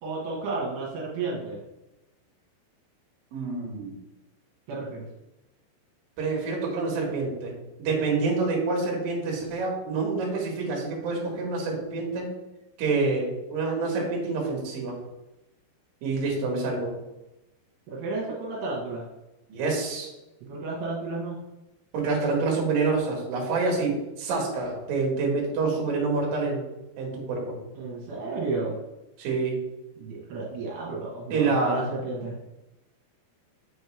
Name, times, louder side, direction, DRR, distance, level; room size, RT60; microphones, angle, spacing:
voice 1, 0.0-1.6 4.7-5.0 17.9-19.1 20.4-21.4 27.8-28.8 30.0-32.4, right 3 dB, 75° right, -4 dB, 3.4 m, -32 dB
voice 2, 3.3-3.9 6.2-7.5 7.8-12.3 12.8-15.0 16.0-17.0 19.5-20.1 21.9-26.6 27.0-27.6 29.2-29.6 31.3-31.9, right 3 dB, 60° right, -1 dB, 3.3 m, -27 dB
8.1 x 6.3 x 3.4 m, 0.96 s
omnidirectional pair, 5.0 m